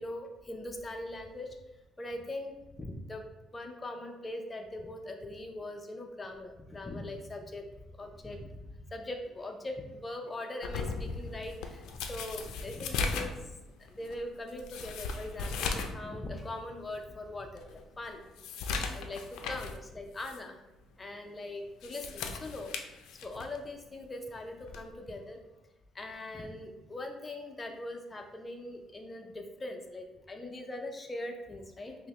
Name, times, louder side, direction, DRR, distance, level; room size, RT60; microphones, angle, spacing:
voice 1, 0.0-1.5 2.0-3.2 3.5-7.6 7.9-8.5 8.9-13.3 13.9-18.2 18.9-19.2 19.5-20.6 21.0-22.7 23.2-25.4 26.0-31.9, left 1 dB, 20° left, 3 dB, 0.5 m, -41 dB
sound 1, 10.6-16.0 16.4-16.5 17.0-17.1 17.6-19.8 20.2-20.4 21.6-23.6 24.7-24.9, left 4 dB, 80° left, 0.4 m, -37 dB
5.1 x 2.1 x 2.9 m, 0.99 s
cardioid pair, 100°, 0 cm